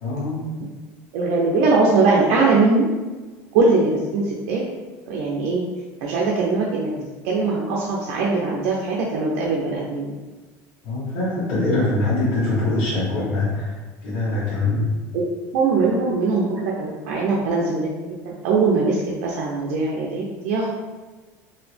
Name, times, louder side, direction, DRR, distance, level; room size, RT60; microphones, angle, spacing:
voice 1, 0.0-0.4 10.8-14.9, left 2 dB, 80° left, -11 dB, 1.2 m, -23 dB
voice 2, 1.1-2.8 3.5-4.6 5.1-5.6 6.0-10.1 15.1-20.7, right 3 dB, 75° right, -3 dB, 0.5 m, -21 dB
2.9 x 2.7 x 3.3 m, 1.3 s
supercardioid pair, 110°, 7 cm